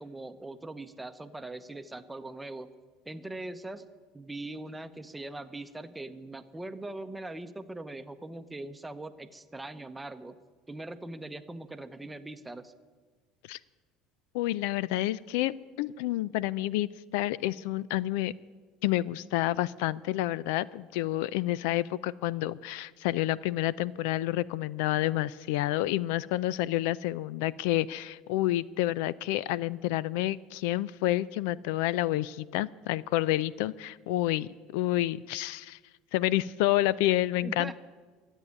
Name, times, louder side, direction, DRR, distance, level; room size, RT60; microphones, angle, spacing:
voice 1, 0.0-2.7 3.0-3.9 4.1-10.3 10.7-12.7 37.4-37.8, right 2 dB, 10° right, 10 dB, 0.8 m, -41 dB
voice 2, 14.3-18.3 18.8-35.8 36.1-37.8, left 15 dB, 80° left, 21 dB, 0.3 m, -29 dB
13.0 x 8.1 x 9.8 m, 1.4 s
supercardioid pair, 110°, 0 cm